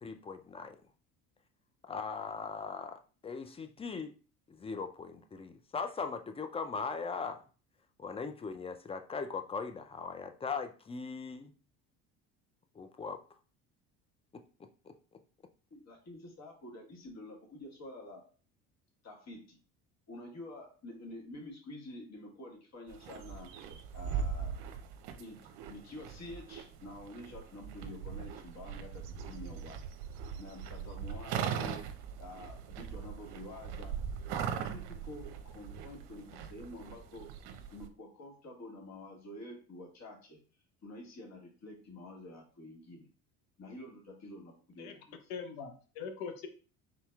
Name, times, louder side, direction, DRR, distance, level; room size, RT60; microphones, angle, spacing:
voice 1, 0.0-0.8 1.9-4.1 4.5-7.4 8.0-11.5 12.8-13.2 14.3-14.4 14.9-15.0, left 5 dB, 15° left, 8 dB, 0.4 m, -39 dB
voice 2, 15.7-18.3 19.0-19.6 20.1-23.5 23.9-24.5 25.2-25.4 25.7-29.8 30.4-31.9 32.2-33.9 34.3-37.3 37.7-40.4 40.8-43.1 43.6-45.2, left 1 dB, 35° left, 1 dB, 1.6 m, -48 dB
sound 1, 22.9-37.9, right 7 dB, 60° right, 0.7 m, -40 dB
voice 3, 45.3-46.5, left 6 dB, 70° left, 6 dB, 0.9 m, -41 dB
4.1 x 3.8 x 2.3 m, 0.38 s
hypercardioid pair, 70°, 44 cm